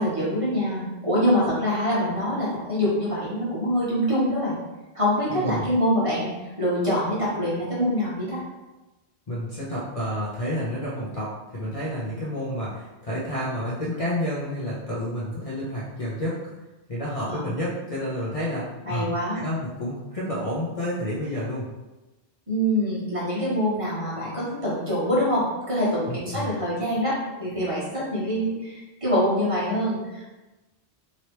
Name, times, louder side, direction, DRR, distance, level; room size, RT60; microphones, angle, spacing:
voice 1, 0.0-4.6 4.9-6.3 6.6-8.4 17.3-17.4 18.8-19.4 22.5-30.2, equal, 30° right, -9 dB, 1.2 m, -25 dB
voice 2, 5.3-5.7 9.3-16.4 16.9-18.6 18.9-21.7 26.1-26.6, equal, 40° left, -8 dB, 0.7 m, -30 dB
3.1 x 3.0 x 2.9 m, 1.1 s
omnidirectional pair, 1.1 m